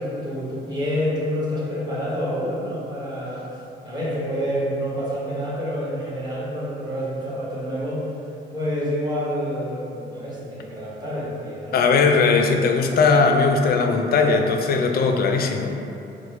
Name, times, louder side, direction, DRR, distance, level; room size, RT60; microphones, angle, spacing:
voice 1, 0.0-3.4 3.8-8.0 8.5-11.8, equal, 20° right, -7 dB, 1.0 m, -28 dB
voice 2, 11.7-15.7, left 4 dB, 50° left, 4 dB, 0.4 m, -19 dB
4.5 x 2.1 x 3.1 m, 2.8 s
cardioid pair, 90°, 20 cm